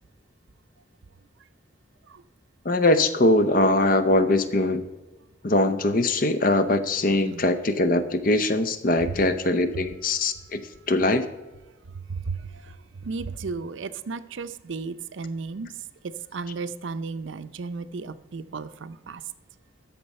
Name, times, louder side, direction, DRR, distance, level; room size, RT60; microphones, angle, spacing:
voice 1, 2.6-4.8 5.4-10.6 10.9-11.3, left 2 dB, 45° left, 11 dB, 0.6 m, -22 dB
voice 2, 12.1-15.7 16.3-19.2, right 4 dB, 70° right, 12 dB, 0.5 m, -34 dB
13.5 x 6.0 x 4.2 m, 1.2 s
head